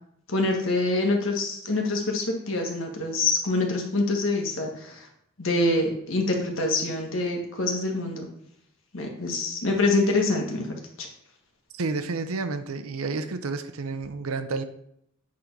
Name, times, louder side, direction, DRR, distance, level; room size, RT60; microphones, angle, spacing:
voice 1, 0.3-5.1 5.4-8.3 8.9-11.1, left 2 dB, 65° left, 2 dB, 1.6 m, -25 dB
voice 2, 11.7-14.6, right 3 dB, 85° right, 9 dB, 0.7 m, -30 dB
8.6 x 3.8 x 5.3 m, 0.74 s
head